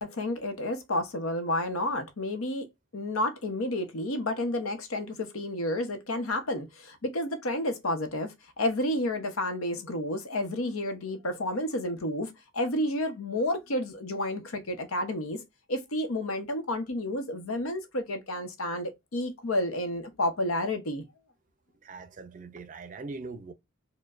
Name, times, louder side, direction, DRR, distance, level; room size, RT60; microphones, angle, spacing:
voice 1, 0.0-2.7 2.9-15.4 15.7-21.0, left 1 dB, 90° left, 0.8 m, -31 dB
voice 2, 21.8-23.5, right 3 dB, 40° right, 0.4 m, -41 dB
4.4 x 2.1 x 2.4 m
head